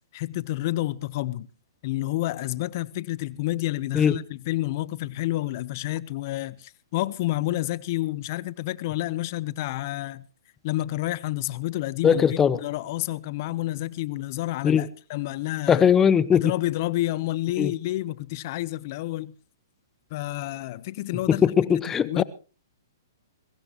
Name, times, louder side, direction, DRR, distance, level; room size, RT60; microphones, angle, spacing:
voice 1, 0.1-1.5 1.8-10.3 10.6-15.9 16.3-19.3 20.1-22.2, left 16 dB, 45° left, 0.9 m, -29 dB
voice 2, 12.0-12.6 14.6-14.8 15.7-16.4 17.6-17.7 21.3-22.2, left 7 dB, 15° left, 0.7 m, -19 dB
22.0 x 16.0 x 3.0 m
hypercardioid pair, 140°, 2 cm